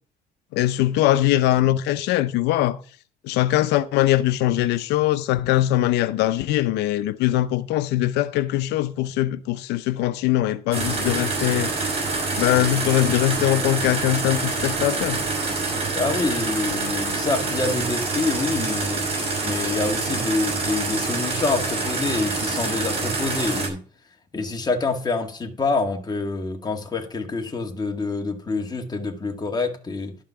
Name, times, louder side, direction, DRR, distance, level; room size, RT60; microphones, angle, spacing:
voice 1, 0.5-2.8 3.2-11.7 12.4-15.2, left 14 dB, 85° left, 0.6 m, -21 dB
sound 1, 10.7-23.7, right 3 dB, 35° right, 5.8 m, -26 dB
voice 2, 15.9-19.1 19.4-23.8 24.3-30.2, left 3 dB, 25° left, 2.1 m, -26 dB
12.0 x 5.6 x 5.7 m
cardioid pair, 110°, 17 cm